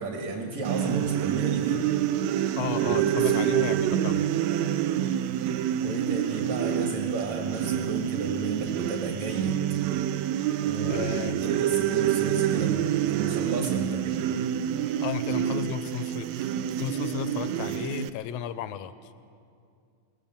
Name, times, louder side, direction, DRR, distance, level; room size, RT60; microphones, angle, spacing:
voice 1, 0.0-1.9 2.8-3.4 5.8-9.6 10.6-14.2, right 3 dB, 60° right, 1 dB, 3.2 m, -33 dB
sound 1, 0.6-18.1, right 11 dB, 75° right, 1.8 m, -27 dB
voice 2, 2.6-4.3 10.9-11.4 15.0-19.1, left 11 dB, 70° left, 12 dB, 1.6 m, -34 dB
23.5 x 19.0 x 7.3 m, 2.4 s
omnidirectional pair, 3.6 m